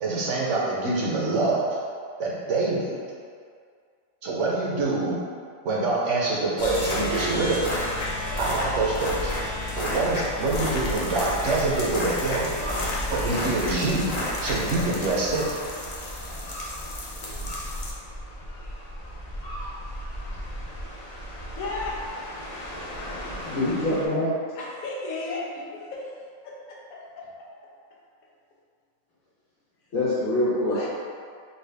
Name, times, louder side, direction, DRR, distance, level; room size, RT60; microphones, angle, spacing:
voice 1, 0.0-1.7 2.2-3.0 4.2-5.2 5.6-7.8 8.4-9.3 9.7-12.5 13.1-14.1 14.4-15.5, right 3 dB, 65° right, -5 dB, 0.9 m, -25 dB
sound 1, 6.6-24.1, left 1 dB, 65° left, 0.4 m, -32 dB
voice 2, 21.6-22.1 24.6-26.2 26.4-27.5 30.5-30.9, left 2 dB, 85° left, -3 dB, 1.1 m, -35 dB
voice 3, 23.4-24.3 29.9-30.9, left 1 dB, 50° left, -11 dB, 1.6 m, -24 dB
4.2 x 2.3 x 3.3 m, 2.1 s
omnidirectional pair, 1.5 m